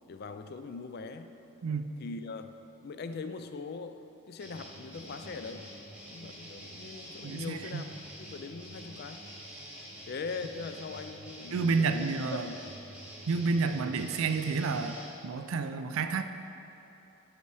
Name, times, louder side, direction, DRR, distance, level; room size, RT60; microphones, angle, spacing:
voice 1, 0.1-1.3 2.0-2.6 2.8-5.7 6.1-7.9 8.2-9.2 10.1-12.1 12.4-12.6, left 4 dB, 45° left, 9 dB, 0.3 m, -41 dB
voice 2, 1.6-1.9 7.2-7.8 11.5-12.5 13.3-15.0 15.2-16.2, right 4 dB, 70° right, 8 dB, 0.4 m, -30 dB
sound 1, 4.4-15.1, equal, 5° right, 1.1 m, -47 dB
8.3 x 5.5 x 4.7 m, 3.0 s
head